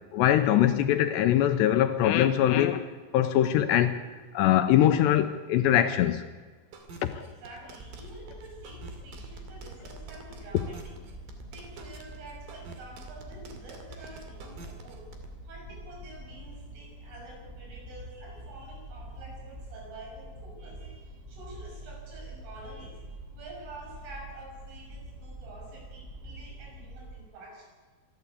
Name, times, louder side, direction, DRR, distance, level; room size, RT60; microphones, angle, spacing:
voice 1, 0.1-2.8 3.1-4.0 4.3-6.2 7.0-7.3, left 11 dB, 80° left, 2.7 m, -22 dB
sound 1, 6.7-15.3, right 4 dB, 55° right, 3.5 m, -47 dB
voice 2, 7.1-11.0 11.5-15.1 15.5-23.1 23.3-27.7, right 2 dB, 80° right, 8.8 m, -48 dB
sound 2, 7.8-27.2, right 1 dB, 10° right, 5.8 m, -45 dB
26.0 x 12.0 x 8.3 m
omnidirectional pair, 5.5 m